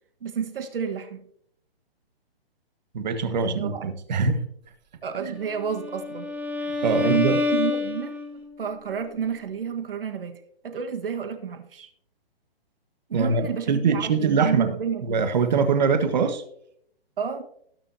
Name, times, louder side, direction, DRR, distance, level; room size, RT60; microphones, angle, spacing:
voice 1, 0.2-1.3 3.4-3.9 5.0-6.3 7.0-11.9 13.1-15.2 17.2-17.4, right 7 dB, 65° right, 6 dB, 1.5 m, -30 dB
voice 2, 2.9-4.4 5.2-5.4 6.8-7.4 13.1-14.7 15.0-16.4, right 5 dB, 45° right, 8 dB, 1.5 m, -23 dB
Bowed string instrument, 5.4-8.6, left 3 dB, 5° right, 0.7 m, -28 dB
19.0 x 7.3 x 2.8 m, 0.69 s
hypercardioid pair, 170°, 30 cm